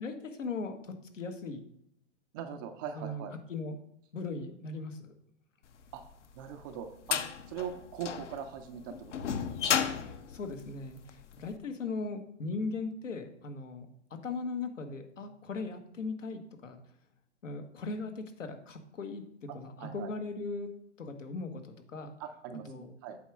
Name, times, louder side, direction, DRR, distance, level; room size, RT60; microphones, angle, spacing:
voice 1, 0.0-1.6 2.9-3.8 4.1-5.1 9.9-16.8 17.4-20.7 21.0-22.1 22.6-22.9, left 3 dB, 90° left, 6 dB, 1.3 m, -39 dB
voice 2, 2.3-3.3 5.9-6.0 6.4-9.1 9.4-9.7 19.8-20.1 22.2-23.2, right 8 dB, 20° right, 6 dB, 0.3 m, -41 dB
sound 1, 6.0-11.4, left 8 dB, 70° left, 0.9 m, -33 dB
8.4 x 3.6 x 6.1 m, 0.73 s
hypercardioid pair, 125°, 37 cm